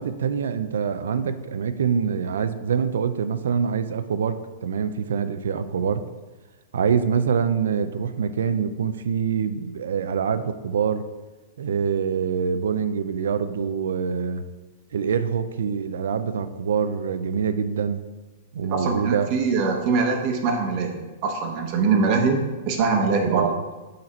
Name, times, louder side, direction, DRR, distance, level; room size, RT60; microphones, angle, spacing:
voice 1, 0.0-6.0 6.7-11.0 11.6-14.4 14.9-18.0 18.5-19.3 23.3-23.5, right 7 dB, 90° right, 11 dB, 0.4 m, -25 dB
voice 2, 18.7-22.4 22.7-23.5, right 4 dB, 40° right, 3 dB, 0.9 m, -23 dB
6.5 x 4.2 x 4.2 m, 1.2 s
hypercardioid pair, 155°, 0 cm